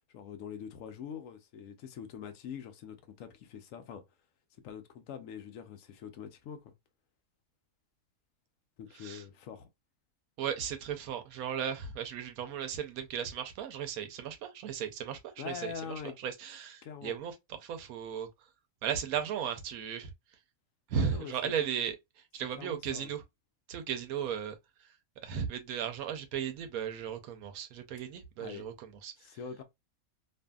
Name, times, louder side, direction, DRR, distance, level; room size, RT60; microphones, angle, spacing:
voice 1, 0.1-4.0 4.6-6.7 8.8-9.7 15.4-16.1 16.8-17.2 20.9-21.5 22.5-23.1 28.4-28.6 29.2-29.6, left 7 dB, 70° left, 0.9 m, -44 dB
voice 2, 10.4-17.3 17.6-18.3 18.8-20.1 20.9-22.0 22.3-23.2 23.7-24.6 25.2-29.1, right 8 dB, 90° right, 1.1 m, -36 dB
2.6 x 2.6 x 2.2 m
omnidirectional pair, 1.5 m